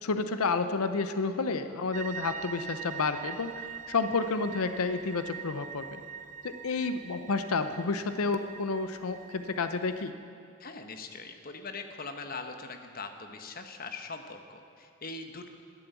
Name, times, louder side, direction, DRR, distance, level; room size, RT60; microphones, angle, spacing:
voice 1, 0.0-6.0 6.4-10.2, left 4 dB, 90° left, 9 dB, 0.7 m, -30 dB
sound 1, 1.9-10.1, right 8 dB, 35° right, 0.3 m, -43 dB
voice 2, 10.6-15.5, left 3 dB, 40° left, 6 dB, 1.0 m, -41 dB
12.5 x 11.0 x 8.3 m, 2.7 s
head